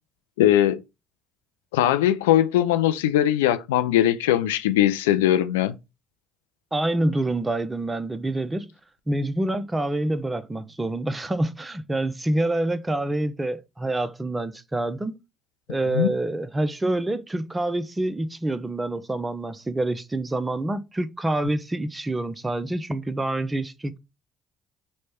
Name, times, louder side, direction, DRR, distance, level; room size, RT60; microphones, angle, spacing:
voice 1, 0.4-0.8 1.7-5.7 15.9-16.1, left 12 dB, 90° left, 0.3 m, -20 dB
voice 2, 6.7-8.7 9.1-15.2 15.7-24.0, right 1 dB, 20° right, 0.5 m, -27 dB
3.1 x 2.1 x 4.2 m
hypercardioid pair, 55°, 0 cm